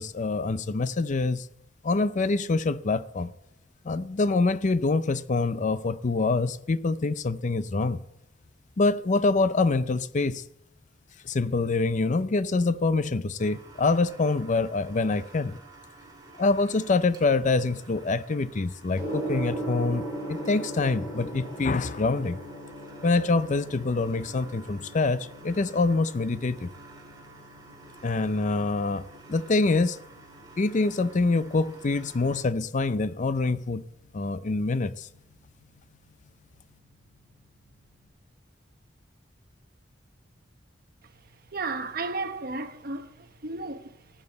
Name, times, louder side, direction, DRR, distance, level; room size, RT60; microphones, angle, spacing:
voice 1, 0.0-1.5 1.8-3.3 3.8-8.0 8.8-10.4 11.2-15.6 16.4-22.4 23.0-26.7 28.0-29.0 29.3-30.0 30.6-33.8 34.1-35.1, left 3 dB, 40° left, 0.5 m, -25 dB
sound 1, 13.4-32.4, right 3 dB, 25° right, 2.9 m, -51 dB
Gong, 19.0-38.0, right 1 dB, 25° left, 4.9 m, -41 dB
voice 2, 41.5-43.1 43.4-43.9, right 3 dB, 55° right, 1.2 m, -33 dB
15.0 x 8.9 x 8.0 m
head